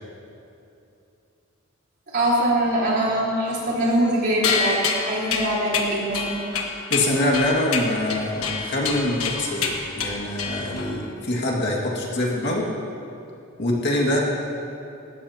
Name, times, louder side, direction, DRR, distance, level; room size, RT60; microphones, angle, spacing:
voice 1, 2.1-6.4, right 1 dB, 50° right, -6 dB, 3.9 m, -23 dB
sound 1, 4.4-11.0, left 5 dB, 80° left, 1.4 m, -27 dB
voice 2, 6.9-12.7 13.6-14.2, left 1 dB, 50° left, -3 dB, 2.1 m, -24 dB
19.5 x 15.5 x 2.9 m, 2.8 s
head